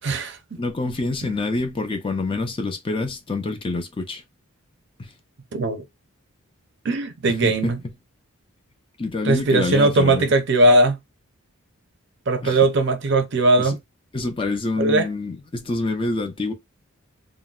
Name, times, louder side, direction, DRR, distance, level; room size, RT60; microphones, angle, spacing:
voice 1, 0.0-0.6 1.2-1.4 5.5-5.8 6.8-7.8 9.2-11.0 12.3-13.8 14.8-15.1, right 2 dB, 55° right, 0.5 m, -19 dB
voice 2, 0.5-4.2 5.0-5.1 7.3-7.9 9.0-10.3 12.4-12.6 13.6-13.8 14.1-16.5, left 3 dB, 25° left, 0.4 m, -26 dB
3.8 x 2.2 x 2.3 m
head